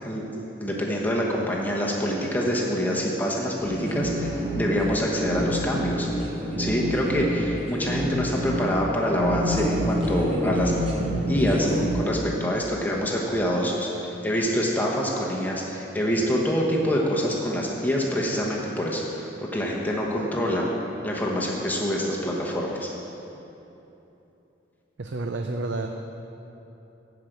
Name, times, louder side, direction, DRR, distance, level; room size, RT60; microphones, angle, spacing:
voice 1, 0.0-6.1 6.6-10.7 11.3-11.7 11.9-20.7 21.0-22.9, equal, 10° left, -3 dB, 1.0 m, -26 dB
sound 1, 3.6-12.1, equal, 30° right, 1.1 m, -28 dB
voice 2, 25.0-25.9, right 2 dB, 75° right, 4 dB, 0.5 m, -29 dB
12.0 x 5.1 x 7.9 m, 3.0 s
head